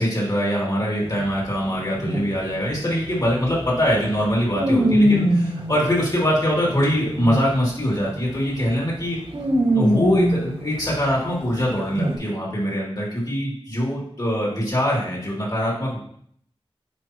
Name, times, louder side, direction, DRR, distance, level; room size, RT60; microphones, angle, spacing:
voice 1, 0.0-9.2 9.7-16.0, equal, 40° left, -5 dB, 3.1 m, -23 dB
sound 1, 1.0-7.7 8.0-8.4 8.7-11.2 11.9-12.2, equal, 65° right, 2.0 m, -22 dB
9.4 x 5.0 x 3.0 m, 0.65 s
wide cardioid pair, 75°, 10 cm